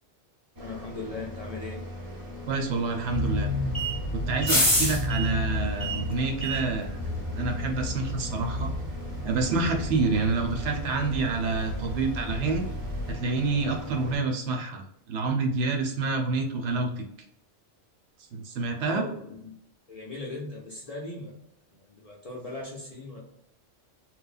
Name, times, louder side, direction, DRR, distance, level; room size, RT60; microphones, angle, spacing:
voice 1, 0.6-1.8 18.9-19.5 19.9-21.3 21.7-23.2, left 2 dB, 55° left, -3 dB, 0.4 m, -38 dB
sound 1, 0.6-14.2, equal, 30° right, 0.3 m, -41 dB
voice 2, 2.5-3.5 4.1-7.0 7.4-8.7 9.2-12.6 13.1-17.0 18.3-19.0, right 3 dB, 70° right, 2 dB, 0.8 m, -28 dB
sound 2, 3.1-13.1, left 1 dB, 15° left, 0.8 m, -30 dB
3.1 x 2.0 x 2.3 m, 0.74 s
omnidirectional pair, 1.3 m